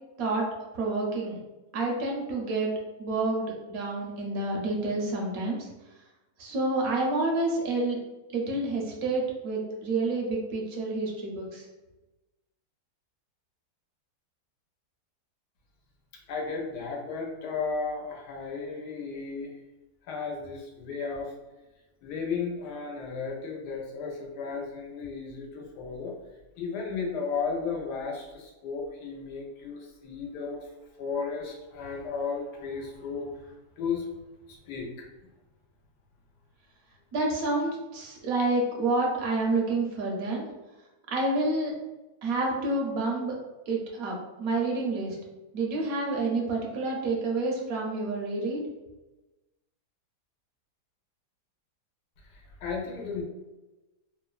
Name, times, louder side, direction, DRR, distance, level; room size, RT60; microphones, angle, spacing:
voice 1, 0.7-1.4 1.7-2.7 3.0-5.7 6.4-8.0 8.3-11.7 37.1-40.5 41.1-41.7 42.2-43.3 43.7-45.2 45.5-48.6, right 2 dB, 70° right, -1 dB, 0.9 m, -28 dB
voice 2, 16.3-19.6 20.1-21.3 22.0-26.1 26.6-30.7 31.0-34.1 34.5-34.9 52.2-53.2, left 5 dB, 85° left, 0 dB, 1.2 m, -34 dB
3.1 x 2.1 x 2.3 m, 1.1 s
omnidirectional pair, 1.7 m